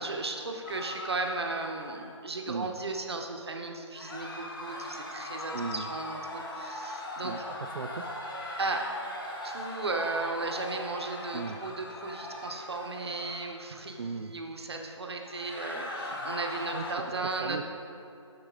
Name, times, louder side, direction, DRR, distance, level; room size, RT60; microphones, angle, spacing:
voice 1, 0.0-7.3 8.6-8.9 9.4-17.6, right 3 dB, 55° right, 3 dB, 0.9 m, -35 dB
sound 1, 0.6-2.2 3.9-13.6 15.2-16.9, left 1 dB, 45° left, 1.3 m, -39 dB
voice 2, 5.5-5.9 7.2-8.4 11.3-11.6 14.0-14.3 16.1-16.3 16.7-17.6, right 4 dB, 80° right, 4 dB, 0.5 m, -38 dB
8.3 x 6.4 x 3.7 m, 2.7 s
figure-of-eight pair, 170°, 16 cm